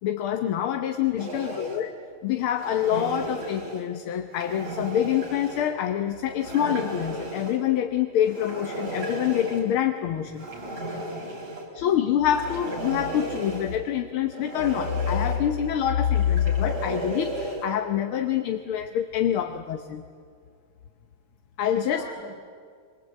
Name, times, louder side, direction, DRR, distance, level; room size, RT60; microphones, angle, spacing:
voice 1, 0.0-1.9 2.2-10.5 11.7-20.0 21.6-22.0, left 10 dB, 85° left, 7 dB, 1.8 m, -26 dB
voice 2, 1.2-1.6 10.7-11.4 21.8-22.5, left 2 dB, 65° left, 4 dB, 4.5 m, -44 dB
sound 1, 1.2-1.8 2.6-3.8 4.3-5.7 6.4-7.6 8.3-9.6 10.4-11.7 12.3-13.8 14.3-15.4 16.1-17.6, right 2 dB, 50° right, 5.3 m, -34 dB
27.0 x 23.5 x 8.2 m, 2.1 s
omnidirectional pair, 2.3 m